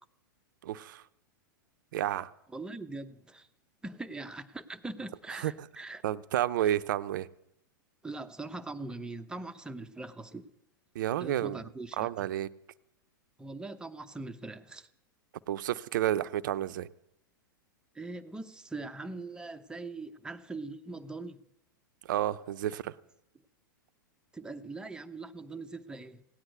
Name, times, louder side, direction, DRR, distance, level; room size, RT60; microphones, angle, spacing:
voice 1, 0.6-1.0 1.9-2.3 5.4-5.5 6.0-7.3 10.9-11.6 12.0-12.5 15.5-16.9 22.1-22.9, right 12 dB, 65° right, 0.6 m, -30 dB
voice 2, 2.5-3.5 3.8-6.0 6.6-6.7 8.0-10.5 11.2-12.3 13.4-14.9 17.9-21.4 24.3-26.2, right 3 dB, 5° right, 0.9 m, -41 dB
16.5 x 9.8 x 8.0 m
hypercardioid pair, 105°, 11 cm